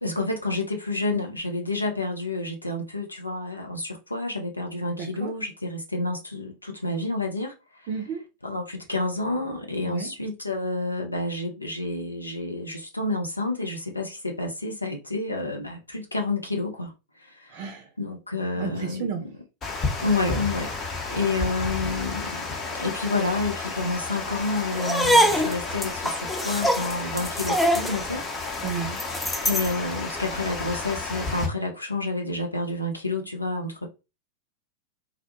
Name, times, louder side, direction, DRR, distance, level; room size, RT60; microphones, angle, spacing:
voice 1, 0.0-3.8 4.1-5.5 5.9-6.5 6.8-7.5 8.4-8.6 8.9-12.6 13.0-14.0 14.4-15.6 16.1-16.7 18.0-19.1 20.0-20.7 21.2-22.2 22.8-25.2 25.4-25.9 26.5-28.2 29.5-33.9, left 2 dB, 85° left, 0.6 m, -28 dB
voice 2, 5.0-5.3 7.9-8.2 9.8-10.1 17.5-17.9 18.6-19.2 28.6-29.0, right 6 dB, 45° right, 0.5 m, -32 dB
Water, 19.6-31.5, left 4 dB, 25° left, 0.7 m, -32 dB
sound 1, 24.8-29.8, equal, 5° left, 0.3 m, -24 dB
2.4 x 2.1 x 2.8 m
figure-of-eight pair, 90°, 0 cm